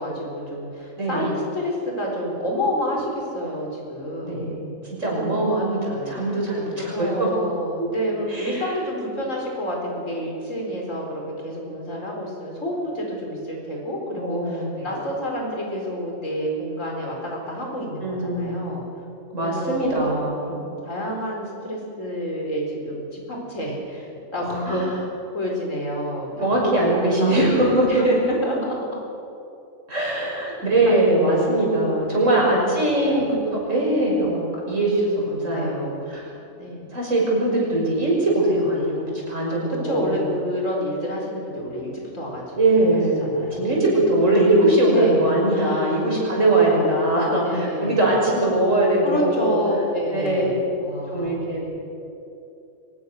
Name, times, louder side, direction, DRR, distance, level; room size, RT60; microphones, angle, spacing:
voice 1, 0.0-4.6 5.1-5.7 6.1-6.5 6.8-18.8 19.4-24.8 25.3-26.8 27.2-29.0 30.9-32.7 33.0-33.4 35.5-36.9 39.7-44.0 44.9-46.0 46.4-47.0 47.3-48.1 49.0-51.4, equal, 90° left, -1 dB, 4.8 m, -29 dB
voice 2, 4.2-7.3 8.3-8.7 14.2-14.9 18.0-18.8 19.3-20.6 24.6-24.9 26.4-28.0 29.9-36.2 36.9-40.3 42.5-43.2 43.5-49.6 50.1-50.4 51.1-51.7, right 1 dB, 80° right, -3 dB, 6.4 m, -21 dB
23.0 x 20.0 x 6.5 m, 2.7 s
omnidirectional pair, 1.3 m